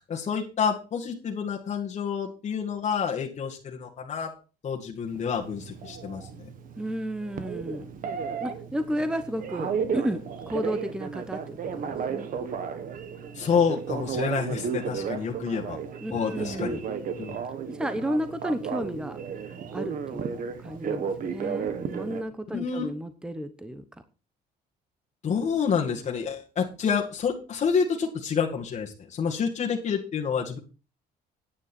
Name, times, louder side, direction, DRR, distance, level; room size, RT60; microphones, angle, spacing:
voice 1, 0.0-4.3 4.6-6.5 13.3-15.8 16.1-16.8 17.2-17.4 22.5-22.9 25.2-30.6, left 6 dB, 45° left, -1 dB, 2.0 m, -28 dB
Telephone, 5.1-22.2, right 6 dB, 55° right, 1.6 m, -34 dB
voice 2, 6.8-7.9 8.4-12.3 16.0-16.8 17.7-19.2 19.7-23.8, equal, 5° right, 10 dB, 0.9 m, -32 dB
9.9 x 9.6 x 4.4 m, 0.34 s
cardioid pair, 110°, 17 cm